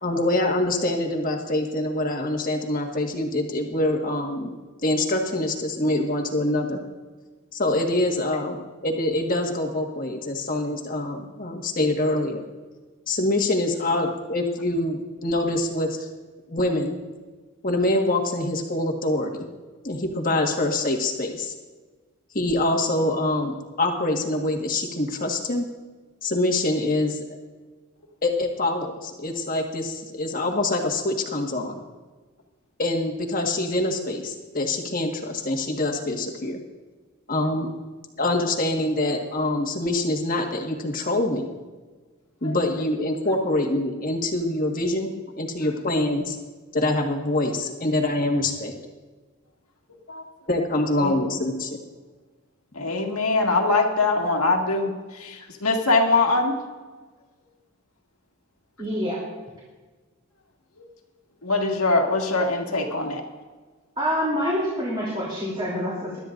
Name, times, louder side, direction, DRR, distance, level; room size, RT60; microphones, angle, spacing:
voice 1, 0.0-4.5 4.8-6.8 7.5-12.4 13.1-16.1 16.5-17.0 17.6-19.5 19.8-21.5 22.3-25.6 26.2-27.2 28.2-31.8 32.8-36.6 37.3-37.7 38.2-41.5 42.4-46.4 46.7-48.7 50.5-51.7, left 1 dB, 40° left, 1 dB, 1.6 m, -25 dB
voice 2, 52.7-54.9 55.2-56.6 61.4-63.2, left 3 dB, 80° left, 1 dB, 1.9 m, -22 dB
voice 3, 58.8-59.2 64.0-66.2, equal, 25° right, -6 dB, 3.1 m, -26 dB
21.5 x 12.5 x 2.6 m, 1.3 s
head